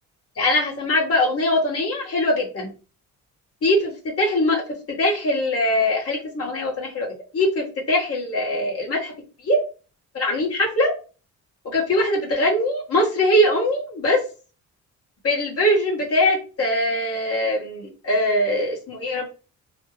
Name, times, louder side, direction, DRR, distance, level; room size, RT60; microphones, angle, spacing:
voice 1, 0.4-2.7 3.6-4.6 4.9-7.1 7.3-9.1 9.4-9.6 10.1-10.9 11.7-14.2 15.2-19.3, left 1 dB, 50° left, -2 dB, 1.7 m, -22 dB
3.3 x 2.2 x 3.2 m, 0.35 s
cardioid pair, 90°, 30 cm